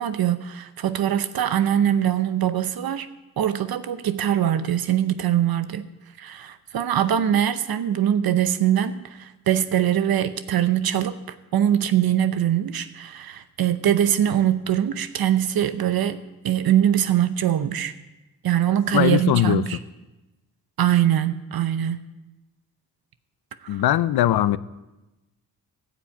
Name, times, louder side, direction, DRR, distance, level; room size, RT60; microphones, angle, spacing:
voice 1, 0.0-3.1 3.4-5.9 6.2-17.9 18.4-19.8 20.8-22.0 23.7-23.8, right 10 dB, 70° right, 0.7 m, -22 dB
voice 2, 18.9-19.6 23.7-24.6, left 13 dB, 90° left, 0.5 m, -20 dB
14.5 x 6.0 x 8.4 m
wide cardioid pair, 105°, 37 cm